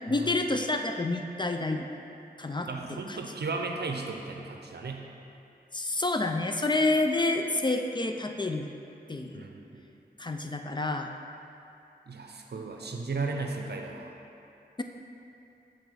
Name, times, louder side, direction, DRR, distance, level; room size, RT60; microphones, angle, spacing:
voice 1, 0.0-1.9 2.4-3.2 5.7-8.7 9.1-9.4 10.2-11.1, left 2 dB, 25° left, 4 dB, 0.3 m, -28 dB
voice 2, 2.7-5.0 9.3-9.8 12.1-14.2, right 3 dB, 70° right, 2 dB, 0.6 m, -35 dB
8.1 x 4.0 x 3.4 m, 2.7 s
wide cardioid pair, 60°, 18 cm